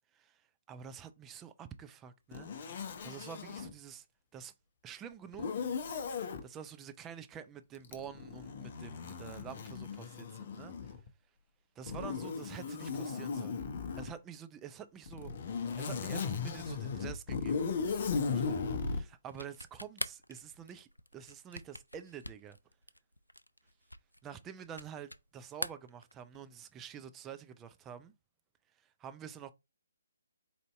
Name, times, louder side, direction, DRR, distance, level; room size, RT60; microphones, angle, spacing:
voice 1, 0.7-4.1 4.3-4.5 4.8-5.7 6.4-10.9 11.8-13.6 14.0-15.3 15.8-22.6 24.2-28.1 28.8-29.5, right 8 dB, 15° right, 0.4 m, -48 dB
Zipper (clothing), 2.3-3.7 5.3-6.4 7.8-11.1 11.9-14.1 15.1-19.0, left 5 dB, 40° left, 0.6 m, -37 dB
sound 1, 19.3-25.3 25.5-26.6, equal, 85° left, 0.3 m, -43 dB
4.2 x 2.6 x 3.3 m
figure-of-eight pair, 140°, 0 cm